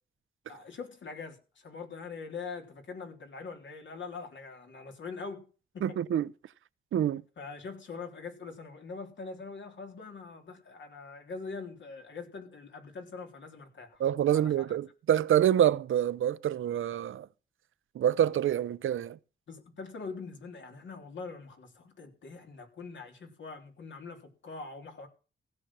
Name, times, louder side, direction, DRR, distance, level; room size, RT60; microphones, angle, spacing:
voice 1, 0.5-5.4 5.7-6.0 7.4-14.0 14.3-14.8 19.5-25.1, left 4 dB, 70° left, 3.7 m, -43 dB
voice 2, 5.8-6.3 6.9-7.2 14.0-17.3 17.9-19.2, right 10 dB, 85° right, 0.7 m, -26 dB
16.0 x 6.9 x 7.4 m
wide cardioid pair, 125°, 20 cm